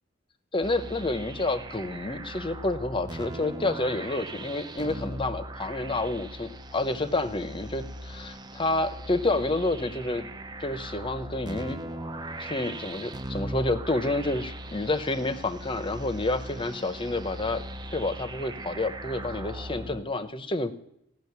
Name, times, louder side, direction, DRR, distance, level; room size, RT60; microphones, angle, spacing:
voice 1, 0.5-10.3 10.6-11.8 12.4-17.6 17.9-20.7, left 2 dB, 25° left, 10 dB, 0.8 m, -29 dB
sound 1, 0.6-20.0, right 1 dB, 20° right, 0.7 m, -39 dB
16.5 x 6.4 x 9.5 m, 0.78 s
head